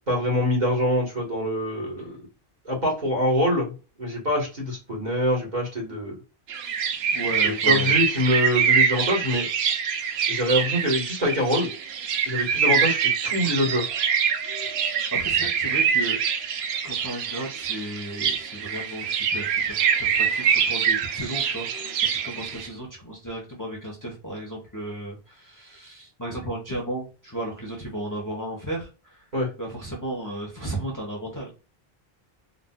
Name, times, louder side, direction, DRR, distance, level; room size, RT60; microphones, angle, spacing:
voice 1, 0.1-2.3 2.6-6.2 7.4-9.5 10.3-11.7 12.2-13.9 29.3-29.5, equal, 45° right, -2 dB, 1.7 m, -25 dB
sound 1, 6.5-22.7, right 7 dB, 85° right, 0.9 m, -24 dB
voice 2, 7.1-7.9 14.6-14.8 15.1-16.2 16.8-29.3 29.6-31.5, right 1 dB, 20° left, -3 dB, 0.9 m, -34 dB
4.0 x 2.5 x 2.2 m, 0.32 s
omnidirectional pair, 1.0 m